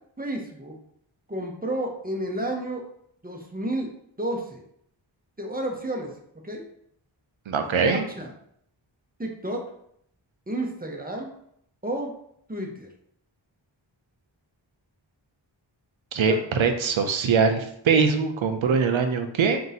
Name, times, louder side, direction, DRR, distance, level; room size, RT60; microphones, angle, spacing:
voice 1, 0.2-0.8 1.3-2.8 3.2-3.9 4.2-4.6 5.4-6.1 6.4-6.6 7.8-8.3 9.2-9.6 10.5-11.3 11.8-12.1 12.5-12.9, right 1 dB, 20° right, 1 dB, 0.7 m, -31 dB
voice 2, 7.5-8.0 16.1-19.6, right 5 dB, 85° right, 6 dB, 0.6 m, -22 dB
3.8 x 2.7 x 4.0 m, 0.70 s
wide cardioid pair, 70°, 46 cm